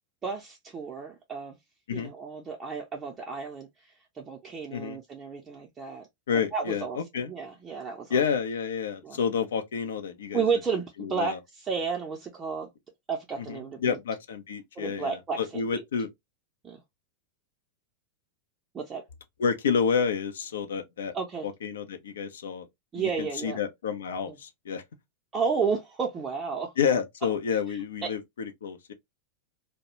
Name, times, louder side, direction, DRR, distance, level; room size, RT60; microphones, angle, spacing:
voice 1, 0.2-1.6 1.9-6.1 6.3-8.2 9.0-9.2 10.3-12.7 13.1-14.0 14.8-15.8 16.6-16.8 18.7-19.0 21.1-21.5 22.9-23.6 24.3-24.4 25.3-26.7 27.7-28.1, right 5 dB, 20° right, 0.5 m, -32 dB
voice 2, 6.3-7.3 8.1-10.4 11.0-11.4 13.4-16.1 19.4-21.1 21.4-22.7 22.9-24.8 26.8-28.9, left 6 dB, 65° left, 0.4 m, -29 dB
2.2 x 2.1 x 2.9 m
figure-of-eight pair, 90°, 0 cm